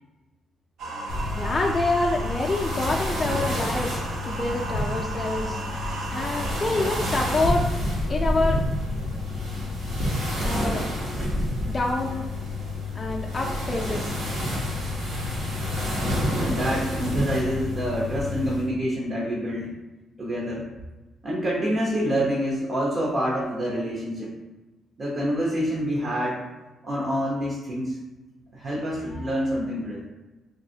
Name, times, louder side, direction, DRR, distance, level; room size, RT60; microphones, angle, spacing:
sound 1, 0.8-7.5, right 2 dB, 70° right, 0.8 m, -34 dB
sound 2, 1.1-18.7, left 1 dB, 85° right, 1.4 m, -29 dB
voice 1, 1.4-5.6 6.1-7.7 8.1-8.6 10.4-10.8 11.7-12.3 12.9-14.2, left 2 dB, 25° left, -2 dB, 0.4 m, -27 dB
voice 2, 16.3-19.7 20.2-20.7 21.2-24.3 25.0-26.4 26.8-28.0 28.5-30.0, equal, 45° right, -4 dB, 0.9 m, -27 dB
3.8 x 3.3 x 2.8 m, 1.1 s
cardioid pair, 90°, 0 cm